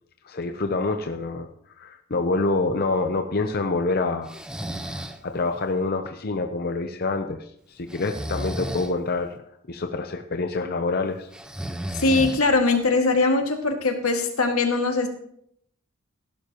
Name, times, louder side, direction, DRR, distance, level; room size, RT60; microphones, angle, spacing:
voice 1, 0.2-1.5 1.7-4.4 4.8-7.5 7.7-9.4 9.7-11.3, left 3 dB, 45° left, 6 dB, 0.7 m, -26 dB
Breathing, 4.3-5.2 7.9-8.9 11.3-12.7, right 1 dB, 5° right, 0.6 m, -33 dB
voice 2, 11.9-15.1, left 3 dB, 85° left, 3 dB, 2.0 m, -21 dB
16.5 x 11.5 x 3.0 m, 0.70 s
head